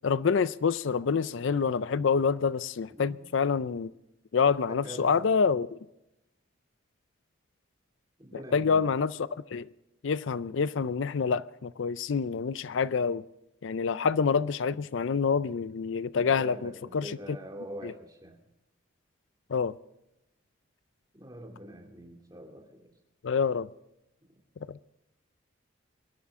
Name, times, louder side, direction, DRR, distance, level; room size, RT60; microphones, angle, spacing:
voice 1, 0.0-3.9 4.3-5.8 8.5-9.1 9.5-9.7 10.0-13.2 13.6-17.4 17.8-17.9 19.5-19.7 23.2-23.7 24.7-24.8, left 5 dB, 70° left, 0.4 m, -27 dB
voice 2, 4.7-5.3 8.2-8.9 16.1-18.4 21.1-22.9, equal, 20° right, 2.7 m, -44 dB
22.0 x 12.5 x 3.6 m
head